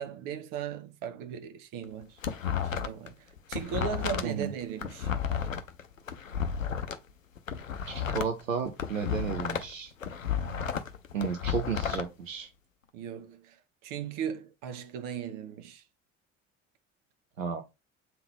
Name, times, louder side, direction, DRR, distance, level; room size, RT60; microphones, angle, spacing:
voice 1, 0.0-2.2 2.6-5.1 10.4-10.7 12.9-15.8, right 8 dB, 55° right, 1.1 m, -38 dB
sound 1, 1.8-3.1 3.4-7.0 7.4-9.7 10.0-12.0, left 7 dB, 90° left, 0.5 m, -32 dB
voice 2, 7.9-9.9 11.1-12.5 17.4-17.6, right 6 dB, 85° right, 0.8 m, -33 dB
7.7 x 3.7 x 3.6 m
figure-of-eight pair, 55°, 39 cm